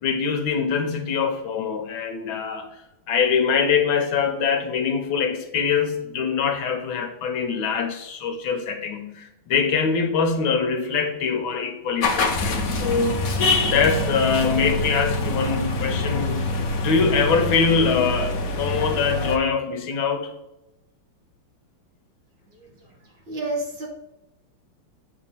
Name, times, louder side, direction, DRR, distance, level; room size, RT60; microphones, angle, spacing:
voice 1, 0.0-2.7 3.1-13.2 13.6-16.4 16.8-20.3, left 5 dB, 70° left, 5 dB, 1.7 m, -23 dB
sound 1, 12.0-19.4, left 2 dB, 50° left, 1.1 m, -25 dB
voice 2, 23.3-23.9, right 2 dB, 55° right, -3 dB, 2.6 m, -29 dB
7.9 x 3.7 x 5.6 m, 0.89 s
omnidirectional pair, 2.4 m